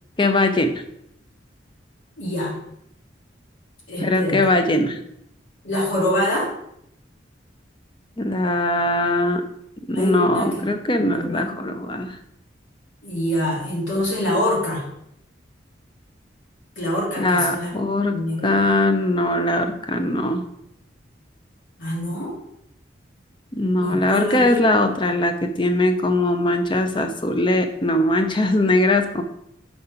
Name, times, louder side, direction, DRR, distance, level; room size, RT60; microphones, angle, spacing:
voice 1, 0.2-0.8 4.0-5.0 8.2-9.4 9.9-12.1 17.2-20.4 23.5-29.2, left 1 dB, 25° left, 6 dB, 0.6 m, -21 dB
voice 2, 2.2-2.6 3.9-4.4 5.6-6.5 9.9-10.7 10.9-11.6 13.0-14.9 16.8-17.8 18.1-18.6 21.8-22.4 23.8-24.9, left 1 dB, 80° left, -4 dB, 2.6 m, -25 dB
5.8 x 4.2 x 5.0 m, 0.75 s
head